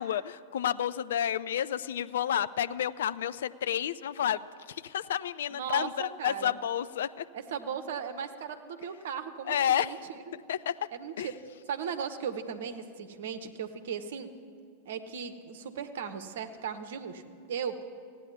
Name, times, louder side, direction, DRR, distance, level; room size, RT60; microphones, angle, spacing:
voice 1, 0.0-4.4 4.8-7.2 9.5-9.9 10.5-10.7 11.2-11.3, left 10 dB, 60° left, 15 dB, 0.3 m, -30 dB
voice 2, 5.5-6.6 7.3-10.2 10.9-11.3 11.7-14.3 14.8-17.8, right 7 dB, 60° right, 9 dB, 0.9 m, -37 dB
15.5 x 9.8 x 7.0 m, 2.2 s
figure-of-eight pair, 90°, 0 cm